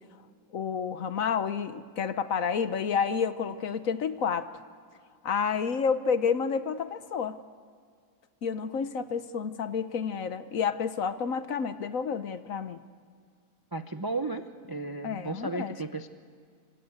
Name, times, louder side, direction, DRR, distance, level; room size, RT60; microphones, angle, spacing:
voice 1, 0.5-4.5 5.2-7.4 8.4-12.8 15.0-15.8, left 6 dB, 60° left, 12 dB, 1.2 m, -30 dB
voice 2, 13.7-16.1, right 3 dB, 30° right, 8 dB, 0.4 m, -34 dB
25.5 x 25.0 x 8.0 m, 2.2 s
omnidirectional pair, 1.8 m